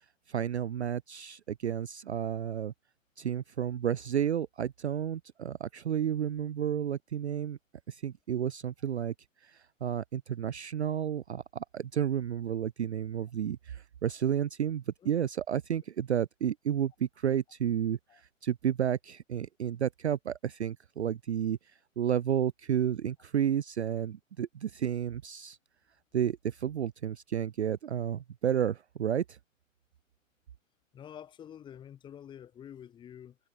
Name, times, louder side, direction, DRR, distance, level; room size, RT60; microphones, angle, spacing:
voice 1, 0.3-2.7 3.2-7.6 7.9-9.1 9.4-18.0 18.4-21.6 22.0-25.6 26.1-29.4, right 9 dB, 55° right, 0.5 m, -31 dB
voice 2, 30.9-33.4, left 9 dB, 10° left, 2.9 m, -48 dB
figure-of-eight pair, 130°, 40 cm